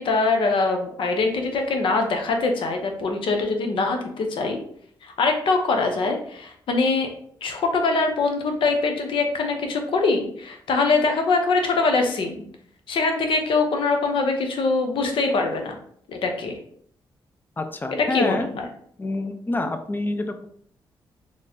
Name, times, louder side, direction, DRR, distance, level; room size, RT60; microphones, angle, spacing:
voice 1, 0.0-4.6 5.0-7.1 7.4-12.4 12.9-15.8 16.1-16.6 18.0-18.7, left 3 dB, 70° left, 4 dB, 0.7 m, -23 dB
voice 2, 17.6-18.5 19.0-20.5, left 2 dB, 20° left, 7 dB, 0.5 m, -27 dB
3.9 x 3.1 x 2.7 m, 0.63 s
cardioid pair, 65°, 9 cm